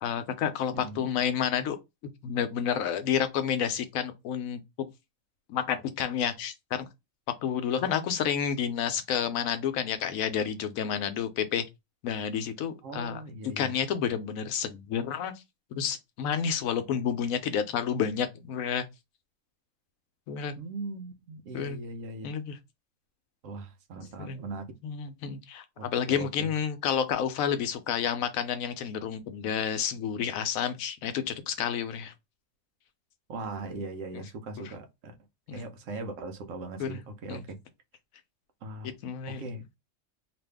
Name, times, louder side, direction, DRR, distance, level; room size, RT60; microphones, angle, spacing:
voice 1, 0.0-1.8 2.2-4.9 5.5-6.9 7.4-11.6 12.0-13.2 13.6-15.3 15.7-18.8 20.3-20.5 21.5-21.8 22.2-22.6 24.2-24.4 24.8-32.1 34.1-34.2 35.5-35.6 36.8-37.0 37.3-37.4 39.0-39.4, left 8 dB, 90° left, 1.0 m, -30 dB
voice 2, 0.7-1.1 7.8-8.2 12.8-13.7 20.6-22.3 23.4-24.7 25.8-26.5 33.3-35.1 35.5-37.6 38.6-38.9 39.3-39.8, right 2 dB, 75° right, 1.1 m, -40 dB
2.8 x 2.5 x 3.3 m
omnidirectional pair, 1.4 m